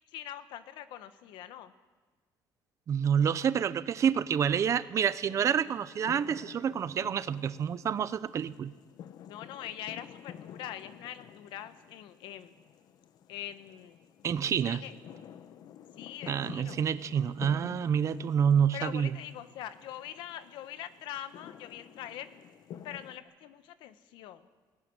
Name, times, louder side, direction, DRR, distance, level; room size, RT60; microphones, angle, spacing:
voice 1, 0.1-1.7 9.3-12.5 13.3-14.0 14.4-14.9 16.0-16.8 18.7-22.3 22.8-24.5, left 11 dB, 90° left, 12 dB, 1.2 m, -43 dB
voice 2, 2.9-8.7 14.2-14.8 16.3-19.1, right 8 dB, 40° right, 15 dB, 0.7 m, -28 dB
sound 1, 5.3-23.2, left 9 dB, 60° left, 1.0 m, -50 dB
18.5 x 17.0 x 9.7 m, 1.3 s
cardioid pair, 145°, 8 cm